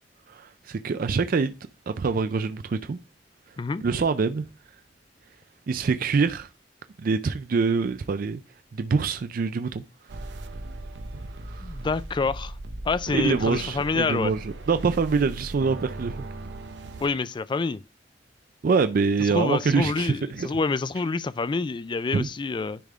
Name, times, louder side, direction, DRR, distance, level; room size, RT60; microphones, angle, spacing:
voice 1, 0.3-1.6 1.9-3.0 3.8-4.5 5.7-6.5 7.0-8.4 8.7-9.8 11.4-11.7 13.1-16.2 18.6-20.5 22.1-22.3, right 4 dB, 50° right, 0.4 m, -25 dB
sound 1, 10.1-17.1, right 2 dB, 85° right, 0.7 m, -38 dB
voice 2, 11.6-12.5 12.9-14.3 17.0-17.8 19.2-22.8, left 4 dB, 25° left, 0.3 m, -27 dB
10.0 x 3.4 x 3.6 m
head